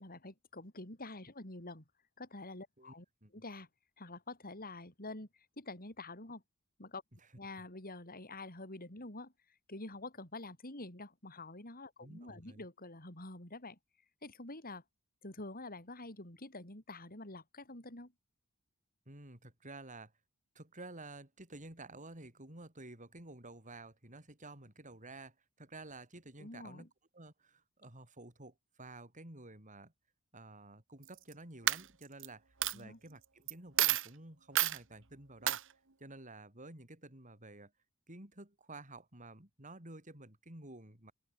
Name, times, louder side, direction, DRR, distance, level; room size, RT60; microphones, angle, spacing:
voice 1, 0.0-1.8 2.2-3.1 3.3-3.7 4.0-6.4 6.8-7.0 7.3-9.3 9.7-13.8 14.2-14.8 15.2-18.1 26.4-26.9 32.7-33.0, left 2 dB, 45° left, 7.5 m, -47 dB
voice 2, 12.0-12.6 19.1-20.1 20.5-26.9 27.1-29.9 30.3-35.6 36.0-37.7 38.1-41.1, right 2 dB, 35° right, 6.3 m, -52 dB
Coin (dropping), 31.0-31.3 31.7-32.3 32.6-32.7 33.5-33.6 33.8-34.1 34.6-34.8 35.5-35.6, right 13 dB, 65° right, 1.8 m, -29 dB
open air
head